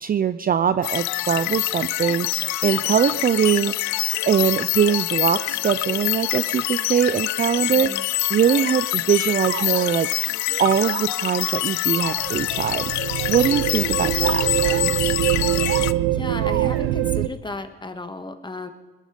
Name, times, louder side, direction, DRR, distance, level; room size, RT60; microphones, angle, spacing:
voice 1, 0.0-3.7 4.3-7.9 8.3-12.9 13.3-14.4, right 8 dB, 30° right, 13 dB, 0.5 m, -22 dB
sound 1, 0.8-15.9, left 18 dB, 70° left, 0.5 m, -25 dB
voice 2, 7.7-8.0 15.6-18.7, left 2 dB, 15° left, 8 dB, 1.7 m, -34 dB
sound 2, 9.3-9.9 10.5-11.1 11.9-12.4 13.4-13.9 14.4-14.9 15.3-15.9 16.3-17.1, right 8 dB, 45° right, 1.0 m, -34 dB
sound 3, 12.1-17.3, right 15 dB, 85° right, 0.7 m, -23 dB
20.5 x 11.5 x 5.3 m, 1.2 s
supercardioid pair, 80°, 30 cm